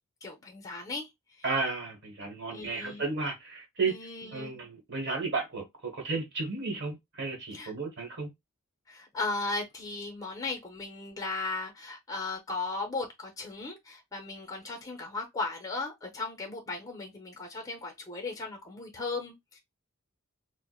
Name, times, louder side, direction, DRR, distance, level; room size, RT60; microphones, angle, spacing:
voice 1, 0.2-1.1 2.5-3.0 3.9-4.6 7.5-7.7 8.9-19.6, left 3 dB, 15° left, 0.7 m, -36 dB
voice 2, 1.4-3.9 4.3-8.3, right 4 dB, 50° right, 1.2 m, -33 dB
4.5 x 2.1 x 2.4 m
head